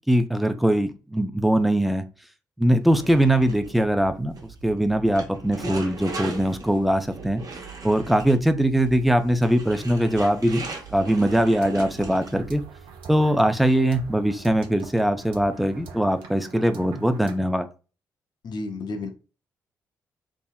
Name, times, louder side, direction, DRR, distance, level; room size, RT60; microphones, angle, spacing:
voice 1, 0.1-2.0 2.6-4.3 4.6-7.4 7.8-10.7 10.9-12.6 13.1-17.7, right 1 dB, ahead, 8 dB, 0.4 m, -21 dB
sound 1, 2.8-12.6, right 3 dB, 45° right, 0.9 m, -39 dB
sound 2, 11.2-17.4, right 5 dB, 75° right, 0.5 m, -43 dB
voice 2, 18.4-19.1, left 3 dB, 55° left, 5 dB, 0.5 m, -31 dB
3.5 x 2.0 x 2.2 m, 0.34 s
hypercardioid pair, 45°, 9 cm